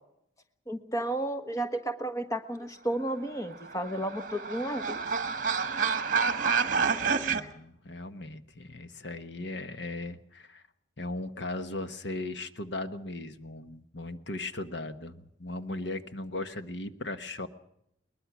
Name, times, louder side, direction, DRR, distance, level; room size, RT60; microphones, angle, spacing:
voice 1, 0.7-5.0, right 1 dB, 15° left, 8 dB, 1.3 m, -32 dB
sound 1, 3.5-7.4, right 5 dB, 45° right, 1.4 m, -28 dB
voice 2, 6.7-10.6 11.0-17.5, left 2 dB, 60° left, 10 dB, 1.2 m, -38 dB
21.5 x 21.0 x 6.1 m, 0.77 s
head